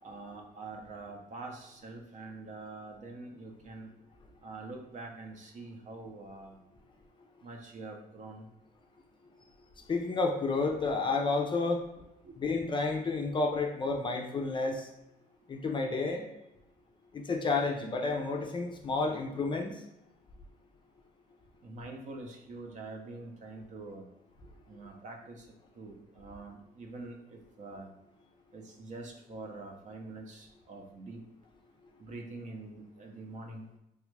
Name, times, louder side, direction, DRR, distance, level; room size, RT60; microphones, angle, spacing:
voice 1, 0.0-3.9 4.4-6.6 7.4-8.5 12.2-12.4 21.6-24.1 24.7-25.5 25.7-27.9 28.5-31.2 32.0-33.7, right 3 dB, 45° right, 2 dB, 0.7 m, -45 dB
voice 2, 9.9-11.8 12.4-14.9 15.5-16.2 17.1-19.7, left 3 dB, 30° left, 2 dB, 0.4 m, -30 dB
3.3 x 2.4 x 3.2 m, 0.90 s
cardioid pair, 110°, 17 cm